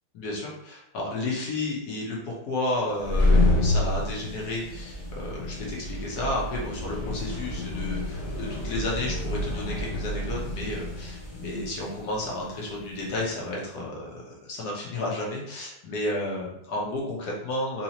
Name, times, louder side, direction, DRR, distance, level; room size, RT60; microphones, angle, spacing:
voice 1, 0.2-17.8, left 1 dB, 65° left, -3 dB, 1.5 m, -32 dB
sound 1, 2.9-13.3, left 1 dB, 50° left, 0.4 m, -28 dB
3.9 x 2.8 x 2.9 m, 0.81 s
omnidirectional pair, 1.9 m